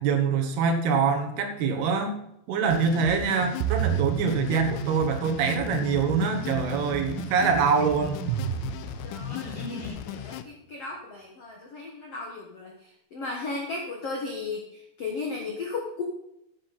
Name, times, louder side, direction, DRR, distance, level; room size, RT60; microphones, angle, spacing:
voice 1, 0.0-2.1 2.5-8.2, right 5 dB, 70° right, 4 dB, 3.1 m, -24 dB
sound 1, 2.7-10.4, left 11 dB, 85° left, 2.9 m, -37 dB
sound 2, 3.6-9.6, right 11 dB, 90° right, 3.0 m, -33 dB
sound 3, 8.2-9.9, left 1 dB, 25° left, 4.6 m, -43 dB
voice 2, 9.0-16.0, left 3 dB, 65° left, 0 dB, 1.5 m, -36 dB
11.0 x 9.8 x 4.2 m, 0.80 s
omnidirectional pair, 5.1 m